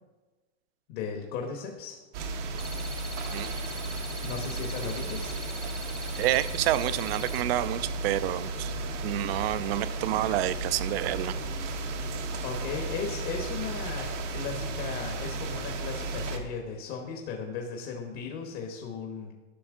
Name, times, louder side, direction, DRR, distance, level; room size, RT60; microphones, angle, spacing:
voice 1, 0.9-2.0 4.2-5.4 12.4-19.3, left 5 dB, 50° left, 2 dB, 1.2 m, -36 dB
sound 1, 2.1-16.4, right 2 dB, 85° right, 1.3 m, -34 dB
sound 2, 2.6-7.4, left 2 dB, ahead, 0.4 m, -43 dB
voice 2, 6.2-8.7 9.0-11.3, right 14 dB, 60° right, 15 dB, 0.5 m, -28 dB
11.5 x 6.1 x 3.7 m, 1.2 s
supercardioid pair, 145°, 35 cm